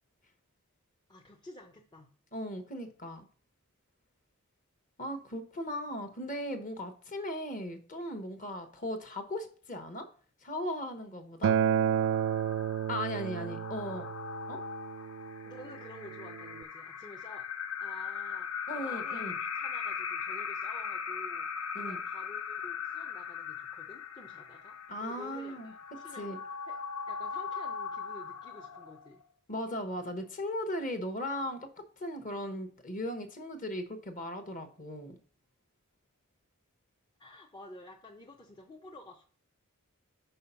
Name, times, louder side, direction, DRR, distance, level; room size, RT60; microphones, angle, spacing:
voice 1, 1.1-2.1 15.4-17.5 17.8-21.5 21.7-29.2 37.2-39.2, left 2 dB, 20° left, 0 dB, 0.6 m, -51 dB
voice 2, 2.3-3.3 5.0-10.1 10.4-11.5 12.9-14.1 14.5-14.6 18.7-19.3 21.7-22.0 24.9-25.7 26.2-26.4 29.5-31.7 32.0-35.1, left 1 dB, 40° left, 6 dB, 1.1 m, -37 dB
Acoustic guitar, 11.4-16.6, right 8 dB, 65° right, 0.3 m, -31 dB
sound 1, 11.8-29.2, left 6 dB, 70° left, 0.8 m, -39 dB
5.5 x 4.9 x 5.6 m, 0.42 s
head